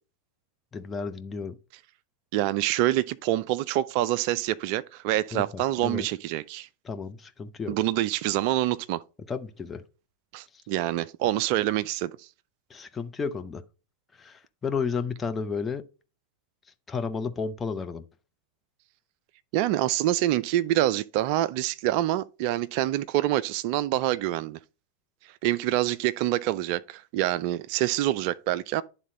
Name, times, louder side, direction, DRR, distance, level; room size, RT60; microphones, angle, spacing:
voice 1, 0.7-1.5 5.3-6.1 6.8-7.8 9.3-9.8 12.7-13.6 14.2-15.8 16.9-18.0, left 5 dB, 15° left, 0.7 m, -32 dB
voice 2, 2.3-6.7 7.7-9.0 10.3-12.3 19.5-24.6 25.4-28.8, right 14 dB, 45° right, 0.3 m, -26 dB
11.0 x 3.7 x 3.9 m
figure-of-eight pair, 90°, 0 cm